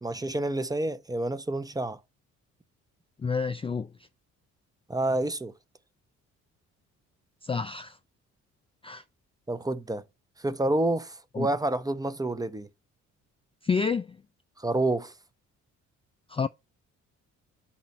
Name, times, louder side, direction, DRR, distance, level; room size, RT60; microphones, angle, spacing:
voice 1, 0.0-2.0 4.9-5.5 9.5-10.0 10.4-12.7 14.6-15.1, right 2 dB, 10° right, 0.7 m, -28 dB
voice 2, 3.2-3.9 7.4-8.0 8.8-9.0 11.3-11.5 13.6-14.2 16.3-16.5, left 5 dB, 20° left, 0.3 m, -29 dB
5.7 x 4.3 x 5.2 m
cardioid pair, 90°, 30 cm